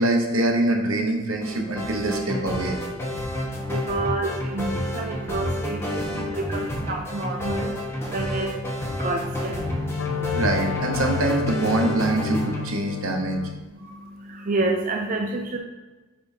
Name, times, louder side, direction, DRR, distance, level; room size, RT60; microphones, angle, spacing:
voice 1, 0.0-2.8 10.3-13.4, right 2 dB, 75° right, 2 dB, 1.0 m, -24 dB
sound 1, 1.4-12.7, equal, 10° left, 1.2 m, -30 dB
voice 2, 3.1-10.4 13.7-15.6, right 2 dB, 40° right, 2 dB, 0.5 m, -30 dB
Wind instrument woodwind instrument, 9.5-13.6, left 9 dB, 70° left, 0.4 m, -31 dB
8.8 x 4.3 x 2.8 m, 1.2 s
head